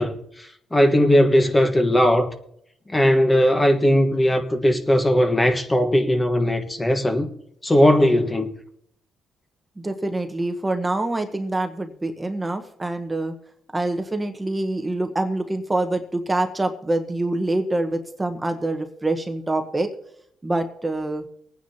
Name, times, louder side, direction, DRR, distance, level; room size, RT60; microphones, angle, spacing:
voice 1, 0.0-2.3 2.9-7.3 7.6-8.5, equal, 15° left, 1.3 m, -18 dB
voice 2, 9.8-13.3 13.7-19.9 20.4-21.2, right 2 dB, 15° right, 1.1 m, -25 dB
23.0 x 9.4 x 2.8 m
cardioid pair, 90°, 0 cm